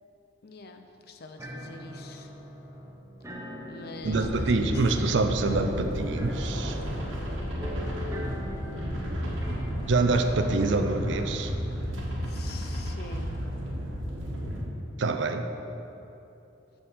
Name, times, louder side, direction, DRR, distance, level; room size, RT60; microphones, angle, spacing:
voice 1, 0.4-2.3 3.7-4.8 12.3-13.3, left 3 dB, 55° left, 6 dB, 0.6 m, -45 dB
sound 1, 1.4-9.7, equal, 15° right, 0.7 m, -41 dB
voice 2, 4.0-7.0 9.9-11.5 15.0-15.5, right 3 dB, 65° right, 7 dB, 0.5 m, -26 dB
sound 2, 4.0-14.6, equal, 80° right, 1.3 m, -33 dB
5.8 x 5.5 x 6.2 m, 2.9 s
head